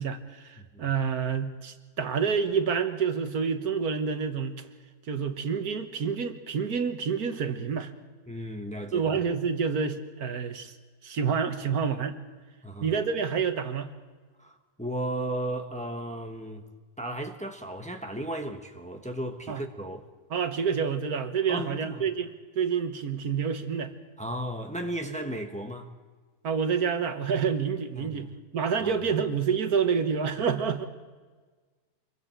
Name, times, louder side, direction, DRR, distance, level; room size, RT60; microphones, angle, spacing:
voice 1, 0.0-4.6 5.1-7.9 8.9-10.7 11.0-12.2 12.8-13.9 19.5-19.6 20.3-23.9 26.4-30.9, right 6 dB, 80° right, 1.7 m, -28 dB
voice 2, 8.3-9.2 12.6-13.0 14.4-16.6 17.0-20.1 21.5-22.1 24.2-25.9 27.9-28.3 28.8-29.0, right 1 dB, 5° left, 1.3 m, -35 dB
27.0 x 23.0 x 4.5 m
omnidirectional pair, 1.6 m